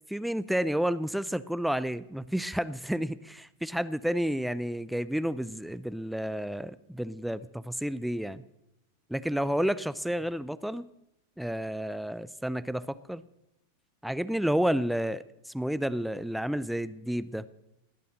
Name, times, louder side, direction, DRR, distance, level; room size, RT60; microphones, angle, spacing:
voice 1, 0.1-8.4 9.1-10.9 11.4-13.2 14.0-17.5, equal, ahead, 16 dB, 0.5 m, -31 dB
19.0 x 9.3 x 6.4 m, 0.85 s
figure-of-eight pair, 90°, 0 cm